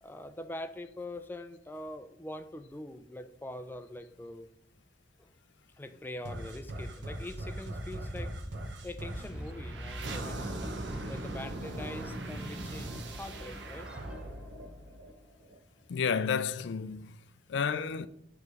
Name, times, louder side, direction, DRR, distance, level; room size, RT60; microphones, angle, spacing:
voice 1, 0.0-4.5 5.2-5.3 5.8-8.3 8.8-13.9, left 1 dB, 10° left, 0.3 m, -43 dB
sound 1, 6.2-15.6, right 1 dB, 85° right, 0.8 m, -40 dB
Run, 7.3-13.6, equal, 35° right, 2.0 m, -48 dB
sound 2, 9.0-15.2, equal, 5° right, 0.7 m, -49 dB
voice 2, 15.9-17.2 17.5-18.1, left 6 dB, 85° left, 0.4 m, -31 dB
6.8 x 3.2 x 4.7 m
head